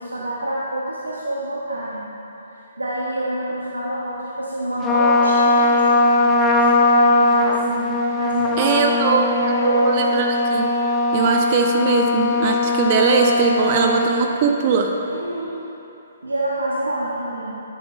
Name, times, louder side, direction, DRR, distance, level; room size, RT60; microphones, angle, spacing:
voice 1, 0.0-2.1 2.5-10.4 15.1-15.6 16.2-17.6, right 1 dB, 90° right, -5 dB, 0.8 m, -27 dB
Trumpet, 4.8-14.2, left 2 dB, 20° left, 0.5 m, -19 dB
voice 2, 8.6-9.3 9.6-10.7 11.1-14.9, right 5 dB, 40° right, 2 dB, 0.5 m, -20 dB
9.8 x 7.2 x 2.4 m, 2.9 s
figure-of-eight pair, 130°, 0 cm